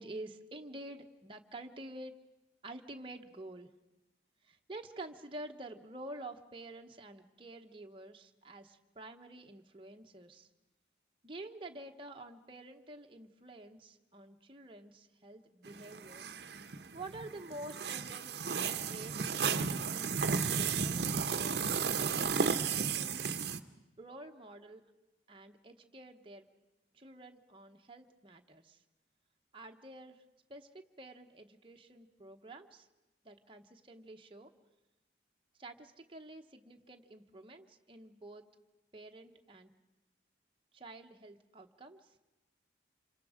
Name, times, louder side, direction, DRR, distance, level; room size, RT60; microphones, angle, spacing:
voice 1, 0.0-2.1 2.6-3.7 4.4-10.5 11.2-16.4 16.9-22.4 22.7-23.4 24.0-24.8 25.3-26.5 26.9-28.8 29.5-30.2 30.5-32.9 33.2-34.5 35.6-38.4 38.9-39.7 40.7-42.1, right 2 dB, 30° right, 3 dB, 1.0 m, -49 dB
sound 1, 15.6-23.6, right 5 dB, 60° right, 0.8 m, -34 dB
27.0 x 24.5 x 5.0 m, 1.0 s
head